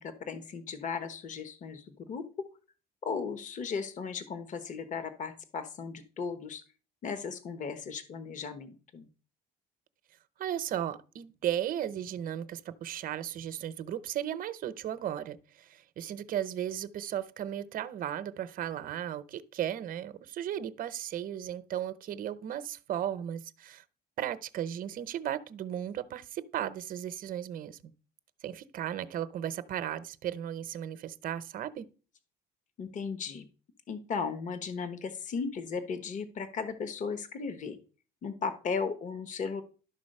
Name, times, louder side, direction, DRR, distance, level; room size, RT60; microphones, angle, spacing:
voice 1, 0.0-2.2 3.0-6.6 7.0-9.1 32.8-33.5 33.9-37.8 38.2-39.6, left 5 dB, 50° left, 1.1 m, -36 dB
voice 2, 10.4-23.8 24.2-27.9 28.4-31.9, right 10 dB, 55° right, 0.7 m, -35 dB
11.5 x 3.9 x 6.6 m
cardioid pair, 110°, 17 cm